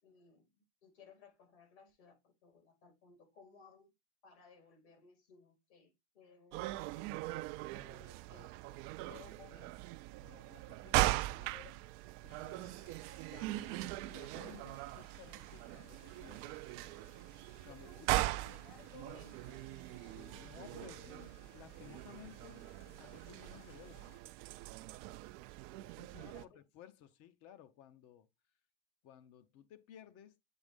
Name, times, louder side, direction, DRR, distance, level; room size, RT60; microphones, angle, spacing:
voice 1, 0.0-3.9 4.2-6.8 7.8-8.7 9.0-9.7 17.7-20.5 20.8-21.1 26.2-26.5, left 5 dB, 70° left, 4.1 m, -60 dB
sound 1, 6.5-26.4, right 18 dB, 40° right, 0.4 m, -40 dB
voice 2, 10.2-11.9 12.2-12.8 13.3-16.5 17.6-18.1 20.0-22.6 23.0-24.1 25.8-28.3 29.0-30.4, left 10 dB, 45° left, 0.9 m, -57 dB
sound 2, 12.3-24.2, left 7 dB, 85° left, 1.5 m, -65 dB
8.1 x 3.2 x 5.2 m
supercardioid pair, 130°, 34 cm